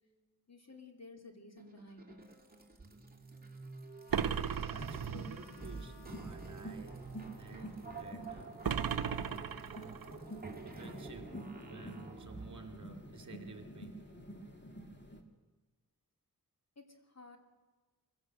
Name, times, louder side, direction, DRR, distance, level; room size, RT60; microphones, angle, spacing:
voice 1, 0.5-2.2 16.8-17.4, left 3 dB, 45° left, 4 dB, 2.9 m, -54 dB
sound 1, 1.6-12.8, right 4 dB, 25° right, 2.6 m, -50 dB
sound 2, 4.1-5.6 8.6-10.2, right 7 dB, 70° right, 0.7 m, -36 dB
voice 2, 4.4-7.1 7.4-8.6 9.6-10.0 10.6-13.9, right 4 dB, 50° right, 4 dB, 2.9 m, -53 dB
sound 3, 4.7-15.2, equal, 30° left, 2.6 m, -48 dB
24.5 x 16.5 x 7.9 m, 1.3 s
wide cardioid pair, 95°, 36 cm